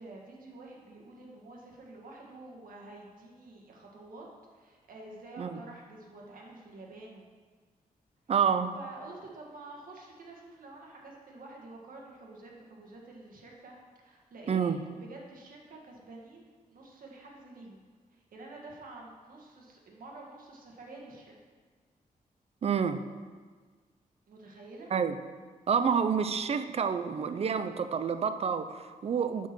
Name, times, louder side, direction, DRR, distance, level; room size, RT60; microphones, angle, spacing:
voice 1, 0.0-4.3 4.5-7.3 8.7-13.8 14.0-17.8 18.3-21.3 24.3-24.9, right 2 dB, 75° right, -2 dB, 1.5 m, -48 dB
voice 2, 8.3-8.8 14.5-14.8 22.6-23.0 24.9-25.2 25.7-29.5, right 6 dB, 45° right, 10 dB, 0.4 m, -28 dB
7.0 x 4.3 x 5.9 m, 1.5 s
wide cardioid pair, 130°, 15 cm